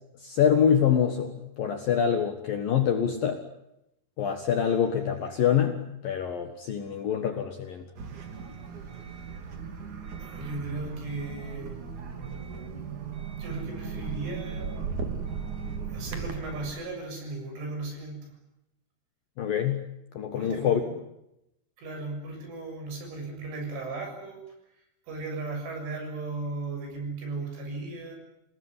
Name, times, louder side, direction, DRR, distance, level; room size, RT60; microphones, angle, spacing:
voice 1, 0.2-3.4 4.2-7.8 19.4-19.8 20.1-20.8, left 8 dB, 60° left, 6 dB, 2.6 m, -25 dB
sound 1, 7.9-16.7, right 6 dB, 45° right, 3.5 m, -37 dB
voice 2, 10.2-11.7 13.4-14.7 15.9-18.4 20.3-20.9 21.8-24.4 25.1-28.2, right 3 dB, 65° right, 3 dB, 9.5 m, -36 dB
28.0 x 19.0 x 9.8 m, 0.84 s
omnidirectional pair, 5.9 m